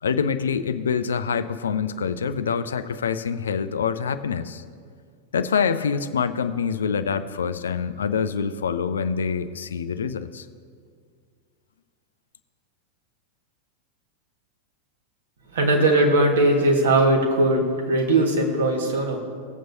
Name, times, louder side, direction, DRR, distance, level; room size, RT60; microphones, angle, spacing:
voice 1, 0.0-4.6 5.3-10.5, left 6 dB, 65° left, 12 dB, 0.4 m, -25 dB
voice 2, 15.5-19.2, right 2 dB, 60° right, 2 dB, 1.7 m, -19 dB
18.5 x 7.7 x 2.7 m, 2.1 s
figure-of-eight pair, 90°, 0 cm